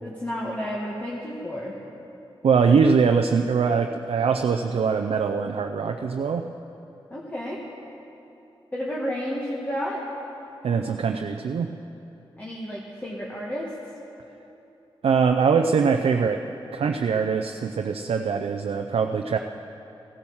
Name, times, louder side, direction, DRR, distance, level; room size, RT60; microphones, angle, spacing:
voice 1, 0.0-1.7 7.1-7.6 8.7-10.0 12.4-13.7, equal, 15° left, -4 dB, 1.9 m, -31 dB
voice 2, 2.4-6.5 10.6-11.7 15.0-16.4 16.7-19.4, right 5 dB, 90° right, 5 dB, 0.6 m, -22 dB
16.0 x 12.0 x 7.2 m, 2.9 s
wide cardioid pair, 85°, 10 cm